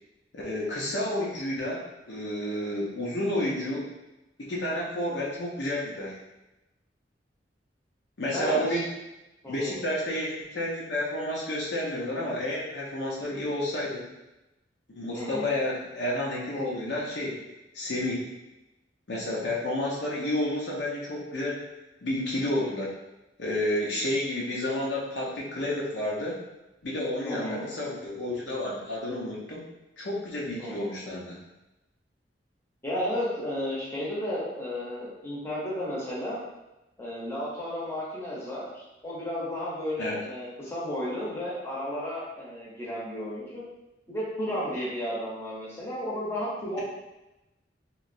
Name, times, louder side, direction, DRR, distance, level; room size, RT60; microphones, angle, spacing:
voice 1, 0.3-3.8 4.5-6.2 8.2-8.9 9.5-14.0 14.9-17.4 17.7-18.3 19.1-21.6 22.0-22.9 23.4-26.4 26.8-29.6 30.0-31.4 40.0-40.2, left 1 dB, 70° left, -4 dB, 0.6 m, -30 dB
voice 2, 8.3-8.8 9.4-9.8 15.1-15.5 27.2-27.7 30.6-31.0 32.8-36.4 37.0-43.6 44.1-46.8, equal, 15° left, -7 dB, 0.8 m, -33 dB
3.0 x 2.4 x 2.6 m, 0.97 s
head